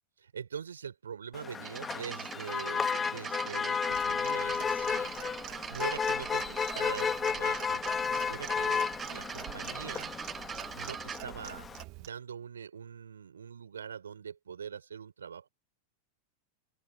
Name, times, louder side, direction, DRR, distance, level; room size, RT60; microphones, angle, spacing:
voice 1, 0.2-5.1 5.7-7.8 8.3-10.1 10.7-11.7 11.9-15.5, right 7 dB, 70° right, 4.3 m, -43 dB
Motor vehicle (road), 1.3-11.8, left 6 dB, 20° left, 1.6 m, -33 dB
sound 1, 1.6-11.2, right 7 dB, 20° right, 0.7 m, -42 dB
Clock, 3.9-12.1, right 24 dB, 40° right, 1.9 m, -49 dB
open air
figure-of-eight pair, 90°, 0 cm